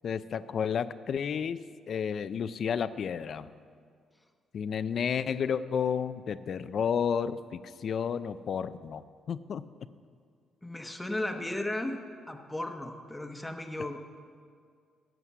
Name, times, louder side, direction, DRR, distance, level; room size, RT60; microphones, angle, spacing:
voice 1, 0.0-1.6 1.9-3.5 4.5-9.6, left 7 dB, 55° left, 15 dB, 0.4 m, -31 dB
voice 2, 10.6-12.0 12.3-14.0, left 1 dB, 10° left, 5 dB, 0.9 m, -35 dB
11.0 x 8.1 x 7.3 m, 2.1 s
cardioid pair, 90°, 0 cm